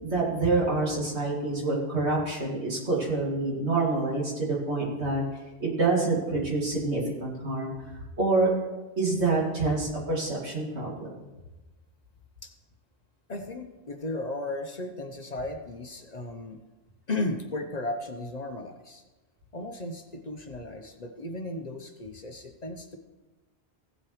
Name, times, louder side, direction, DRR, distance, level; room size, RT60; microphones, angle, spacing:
voice 1, 0.0-5.2 5.6-7.7 8.2-8.5 9.0-11.1, right 3 dB, 85° right, -3 dB, 2.7 m, -27 dB
voice 2, 13.3-16.6 17.1-19.0 19.5-23.0, left 2 dB, 40° left, 5 dB, 0.8 m, -35 dB
16.0 x 8.0 x 3.2 m, 1.1 s
omnidirectional pair, 1.1 m